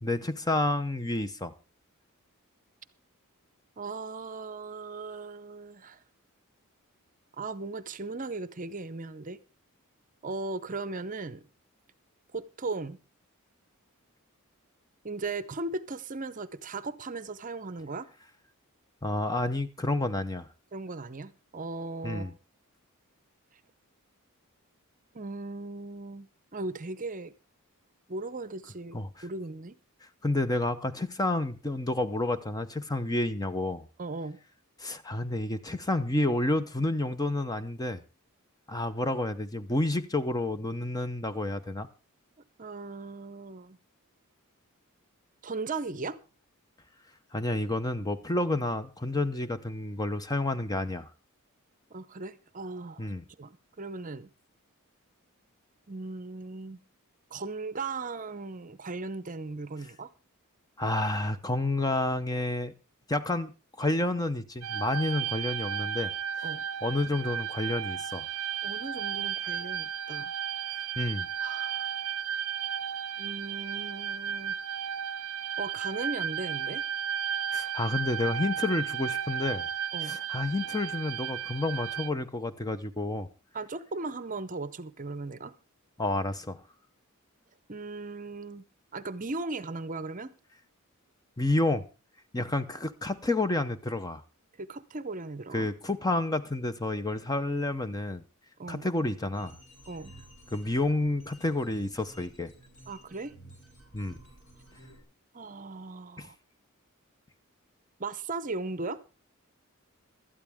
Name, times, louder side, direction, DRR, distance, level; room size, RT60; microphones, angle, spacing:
voice 1, 0.0-1.5 19.0-20.5 22.0-22.3 28.9-29.1 30.2-33.9 34.8-38.0 38.7-41.9 47.3-51.1 53.0-53.2 60.8-62.7 63.1-63.5 63.8-66.1 66.8-68.3 71.0-71.3 77.5-79.7 80.0-83.3 86.0-86.6 91.4-91.9 92.3-94.2 95.5-98.2 98.7-99.6 100.5-102.5 103.9-104.2 106.2-106.3, left 2 dB, 15° left, 0.7 m, -30 dB
voice 2, 3.8-6.0 7.4-9.4 10.2-11.4 12.3-13.0 15.0-18.1 20.7-22.3 25.1-26.3 26.5-27.3 28.1-29.7 34.0-34.4 42.6-43.8 45.4-46.2 51.9-53.1 53.4-54.3 55.9-56.8 57.3-60.1 66.4-66.6 68.6-70.3 70.7-70.9 71.4-71.9 73.2-74.5 75.6-76.9 79.9-80.2 83.5-85.5 87.7-88.6 88.9-90.3 94.6-95.7 98.6-98.9 99.9-100.1 102.9-103.4 105.3-106.4 108.0-109.0, right 3 dB, 35° right, 0.7 m, -37 dB
sound 1, 64.6-82.1, right 8 dB, 70° right, 0.6 m, -34 dB
sound 2, 99.3-105.0, right 1 dB, 60° left, 4.2 m, -53 dB
17.5 x 12.5 x 3.6 m
head